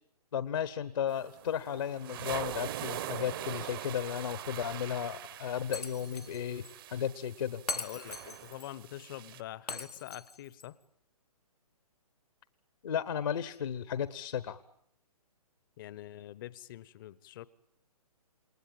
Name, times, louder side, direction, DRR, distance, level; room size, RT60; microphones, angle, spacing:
voice 1, 0.3-6.6 6.9-7.6 12.8-14.6, left 9 dB, 55° left, 15 dB, 1.2 m, -34 dB
sound 1, 1.1-9.4, right 13 dB, 35° right, 1.1 m, -43 dB
Shatter, 5.7-6.4 6.6-6.7 7.7-8.7 9.7-10.7, left 3 dB, 85° left, 1.4 m, -40 dB
voice 2, 7.7-10.8 15.8-17.5, left 14 dB, 35° left, 20 dB, 1.0 m, -45 dB
29.0 x 20.0 x 9.0 m, 0.74 s
figure-of-eight pair, 130°, 20 cm